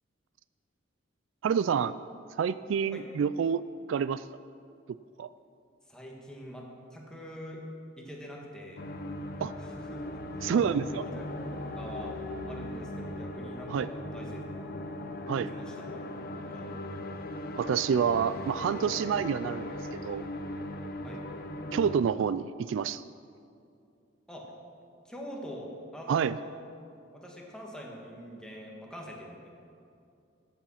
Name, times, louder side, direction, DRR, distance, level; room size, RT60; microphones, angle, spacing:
voice 1, 1.4-1.9 2.4-3.6 3.9-4.2 5.2-5.3 9.4-9.5 10.4-11.0 13.7-13.9 15.3-15.5 17.6-20.2 21.7-23.0 26.1-26.4, right 7 dB, 70° right, 16 dB, 0.3 m, -28 dB
voice 2, 5.9-7.6 8.0-8.8 9.6-10.2 10.5-11.3 11.5-12.1 12.4-14.8 15.4-16.0 16.3-16.7 21.0-21.2 24.3-24.5 25.1-26.5 27.1-29.5, equal, 5° left, -2 dB, 1.9 m, -44 dB
sound 1, 8.8-21.9, left 1 dB, 50° left, 0.9 m, -38 dB
14.0 x 8.9 x 5.7 m, 2.5 s
head